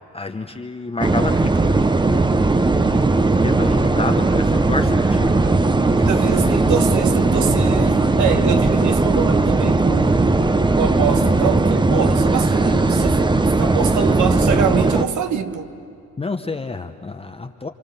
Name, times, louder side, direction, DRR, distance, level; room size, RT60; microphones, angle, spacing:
voice 1, 0.0-2.3 3.4-5.6 6.0-6.6 16.2-17.7, left 3 dB, 20° left, 0.9 m, -29 dB
sound 1, 1.0-15.0, right 3 dB, 15° right, 0.8 m, -17 dB
voice 2, 2.8-3.1 6.1-10.3 10.8-15.7, right 7 dB, 70° right, 1.4 m, -24 dB
28.5 x 25.0 x 6.9 m
cardioid pair, 90°, 30 cm